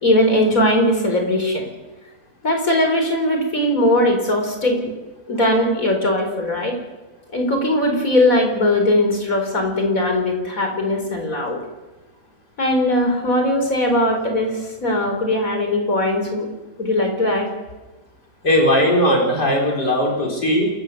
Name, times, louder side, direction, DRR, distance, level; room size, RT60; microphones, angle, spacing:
voice 1, 0.0-1.7 2.4-4.9 5.3-6.8 7.3-11.6 12.6-16.5 16.8-17.5, left 1 dB, 55° left, 3 dB, 4.8 m, -19 dB
voice 2, 18.4-20.7, equal, 80° left, -1 dB, 5.3 m, -18 dB
28.0 x 14.5 x 6.7 m, 1.1 s
omnidirectional pair, 1.8 m